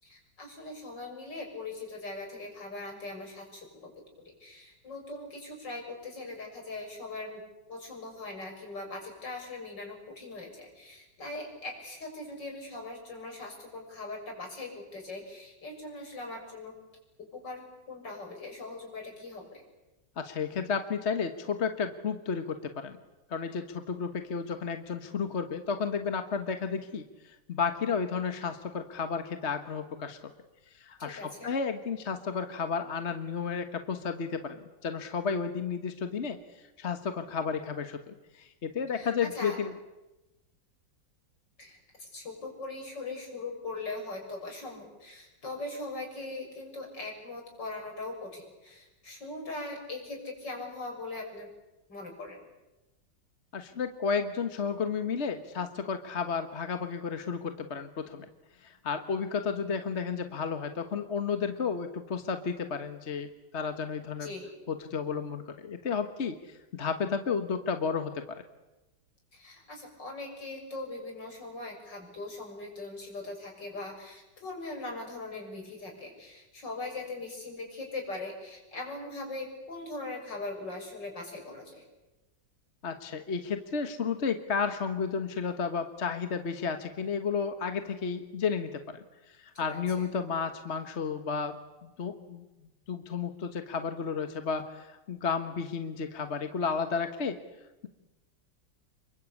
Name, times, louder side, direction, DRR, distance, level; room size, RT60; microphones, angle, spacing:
voice 1, 0.0-3.9 4.4-7.4 7.7-16.8 17.3-19.6 31.0-31.5 38.9-39.6 41.6-51.5 51.9-52.4 64.2-64.5 69.3-81.8 89.6-90.1, left 2 dB, 65° left, 1 dB, 7.3 m, -40 dB
voice 2, 20.2-23.0 23.3-30.2 30.7-39.7 53.5-58.3 58.6-64.3 64.7-68.1 82.8-91.5 91.8-92.4 92.9-97.4, left 5 dB, 40° left, 8 dB, 1.4 m, -32 dB
28.0 x 22.5 x 8.5 m, 1.0 s
omnidirectional pair, 2.1 m